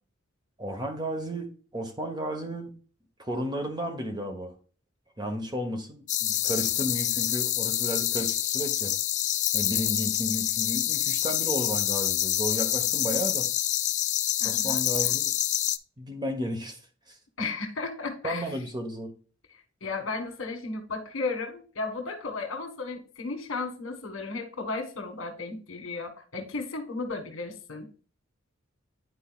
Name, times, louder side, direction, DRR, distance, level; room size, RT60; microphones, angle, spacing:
voice 1, 0.6-2.7 3.2-4.5 5.2-8.9 9.5-13.5 14.4-15.3 16.0-16.8 18.2-19.1, equal, 20° right, 4 dB, 1.1 m, -33 dB
sound 1, 6.1-15.8, left 13 dB, 35° left, 0.3 m, -27 dB
voice 2, 14.4-15.1 17.4-18.6 19.5-27.9, left 3 dB, 85° left, 5 dB, 1.5 m, -34 dB
10.5 x 4.5 x 2.4 m, 0.40 s
head